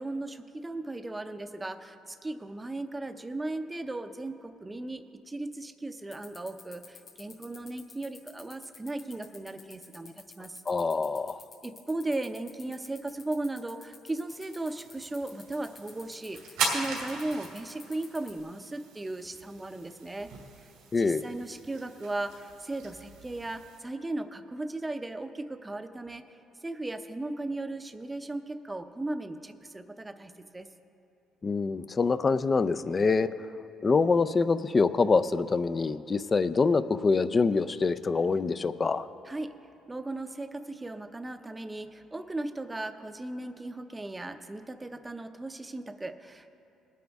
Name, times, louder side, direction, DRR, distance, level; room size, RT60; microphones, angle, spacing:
voice 1, 0.0-10.6 11.6-20.3 20.6-20.7 21.0-26.3 26.6-30.7 39.3-39.6 39.9-46.6, right 2 dB, 15° right, 8 dB, 0.7 m, -37 dB
sound 1, 6.1-18.4, left 6 dB, 55° left, 2.3 m, -50 dB
voice 2, 10.7-11.4 20.9-21.2 31.4-33.3 33.8-39.1, left 4 dB, 30° left, 13 dB, 0.4 m, -25 dB
sound 2, 14.3-23.8, right 4 dB, 90° right, 2.5 m, -39 dB
19.5 x 9.3 x 3.5 m, 2.8 s
cardioid pair, 85°, 0 cm